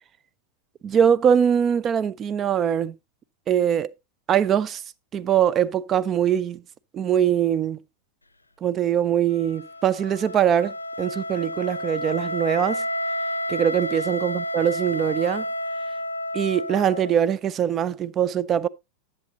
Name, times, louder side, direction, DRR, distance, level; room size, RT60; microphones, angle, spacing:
voice 1, 0.8-2.9 3.5-3.9 4.3-4.8 5.1-6.6 6.9-7.8 8.6-12.8 13.5-15.4 16.3-18.7, right 9 dB, 25° right, 0.4 m, -22 dB
Wind instrument woodwind instrument, 9.3-17.3, equal, 80° left, 0.5 m, -30 dB
10.5 x 7.3 x 2.9 m
figure-of-eight pair, 90°, 0 cm